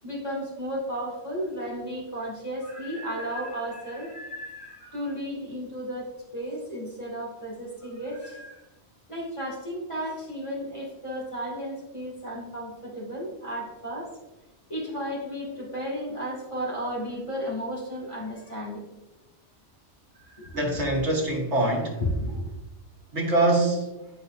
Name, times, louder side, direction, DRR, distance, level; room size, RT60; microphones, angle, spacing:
voice 1, 0.0-8.6 9.1-14.1 14.7-18.8 20.3-20.9 22.2-22.5, equal, 25° left, -4 dB, 2.4 m, -34 dB
voice 2, 20.5-22.0 23.1-23.9, right 2 dB, 80° right, 1 dB, 1.6 m, -24 dB
9.8 x 5.3 x 2.7 m, 1.0 s
omnidirectional pair, 1.2 m